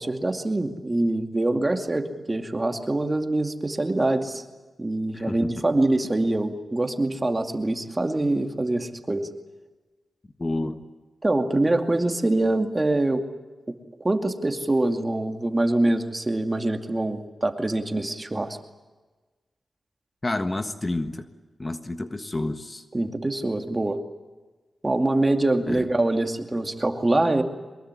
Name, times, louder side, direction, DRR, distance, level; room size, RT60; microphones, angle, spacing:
voice 1, 0.0-4.4 4.8-9.3 11.2-13.2 13.7-13.8 14.0-18.6 22.9-24.0 24.8-27.4, right 2 dB, 25° right, 5 dB, 2.4 m, -24 dB
voice 2, 5.1-5.5 10.4-10.8 20.2-21.3 21.6-22.8 25.7-25.9, left 2 dB, 30° left, 8 dB, 1.5 m, -29 dB
23.5 x 21.5 x 9.7 m, 1.3 s
cardioid pair, 75°, 0 cm